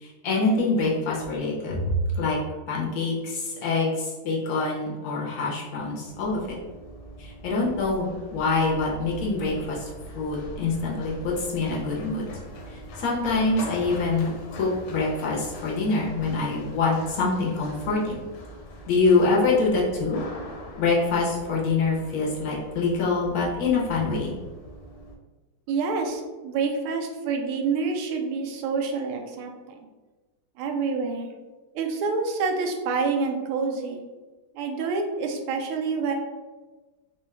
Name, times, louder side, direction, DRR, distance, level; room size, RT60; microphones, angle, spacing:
voice 1, 0.0-2.4 2.7-6.6 7.2-12.3 12.7-18.2 18.9-20.2 20.8-24.3, left 3 dB, 60° left, -4 dB, 1.0 m, -25 dB
Run, 6.1-25.1, equal, 75° left, 1.3 m, -42 dB
voice 2, 25.7-29.9 30.6-31.3 31.7-34.0 34.5-36.1, right 4 dB, 85° right, 3 dB, 1.5 m, -27 dB
4.0 x 2.3 x 3.2 m, 1.3 s
omnidirectional pair, 2.3 m